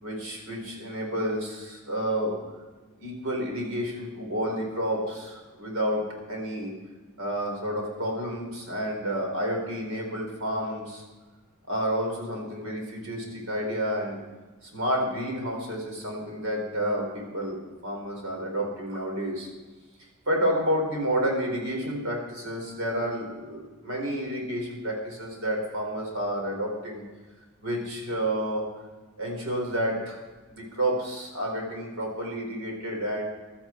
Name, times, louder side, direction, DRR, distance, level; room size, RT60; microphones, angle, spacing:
voice 1, 0.0-2.4 3.0-6.0 6.3-6.7 7.2-11.0 11.7-14.2 14.6-19.5 20.3-27.0 27.6-28.7 29.2-30.2 30.5-33.2, equal, 70° right, 1 dB, 4.3 m, -30 dB
16.0 x 12.0 x 4.5 m, 1.3 s
head